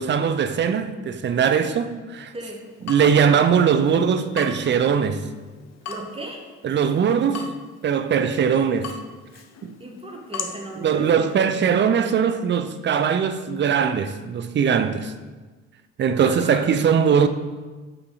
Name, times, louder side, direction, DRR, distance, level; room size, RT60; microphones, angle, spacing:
voice 1, 0.0-2.3 2.8-5.2 6.6-7.5 7.8-8.9 9.6-9.8 10.8-15.1 16.0-17.3, right 7 dB, 30° right, 0.6 m, -20 dB
Water tap faucet / Drip, 2.5-11.7, left 5 dB, 45° left, 0.8 m, -40 dB
voice 2, 5.9-6.4 9.8-11.5 16.2-16.7, right 1 dB, 15° right, 1.6 m, -36 dB
7.0 x 5.7 x 4.0 m
figure-of-eight pair, 50°, 36 cm